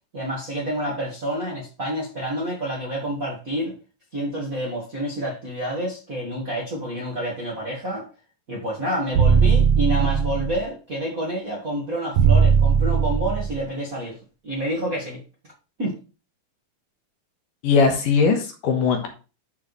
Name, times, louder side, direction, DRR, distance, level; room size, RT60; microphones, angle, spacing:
voice 1, 0.1-3.7 4.1-8.1 8.5-14.2 14.4-15.2 15.8-15.9, equal, 35° right, 1.5 m, -28 dB
sound 1, 9.1-10.6 12.2-13.6, right 7 dB, 70° right, 2.2 m, -18 dB
voice 2, 17.6-19.1, left 5 dB, 70° left, 2.9 m, -19 dB
11.0 x 4.8 x 3.2 m
omnidirectional pair, 4.1 m